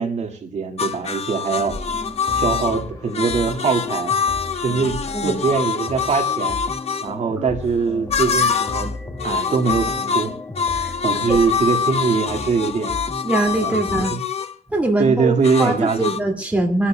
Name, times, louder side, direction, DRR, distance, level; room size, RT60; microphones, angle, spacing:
voice 1, 0.0-1.8 2.3-4.1 4.6-6.6 7.0-8.9 9.2-10.3 11.0-13.0 13.6-14.2 15.0-16.1, right 5 dB, 50° right, 4 dB, 2.0 m, -22 dB
sound 1, 0.8-7.1 8.1-8.9 9.2-14.6 15.4-16.2, left 6 dB, 45° left, 0.9 m, -25 dB
sound 2, 1.6-14.1, left 2 dB, 25° left, 1.7 m, -34 dB
sound 3, 8.4-11.8, right 5 dB, 75° right, 1.9 m, -43 dB
voice 2, 13.2-14.1 14.7-16.9, right 2 dB, 10° right, 1 dB, 2.3 m, -22 dB
27.5 x 12.5 x 2.2 m, 0.35 s
wide cardioid pair, 175°, 14 cm